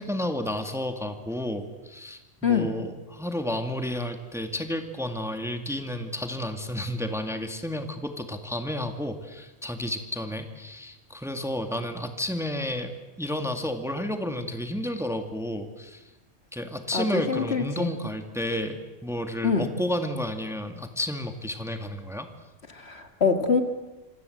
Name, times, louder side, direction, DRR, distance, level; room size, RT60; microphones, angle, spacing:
voice 1, 0.0-16.0 16.5-22.3, left 1 dB, ahead, 6 dB, 2.0 m, -31 dB
voice 2, 16.9-17.9 19.4-19.7 22.7-23.6, left 5 dB, 55° left, 6 dB, 2.4 m, -25 dB
26.5 x 26.5 x 8.0 m, 1.1 s
omnidirectional pair, 1.3 m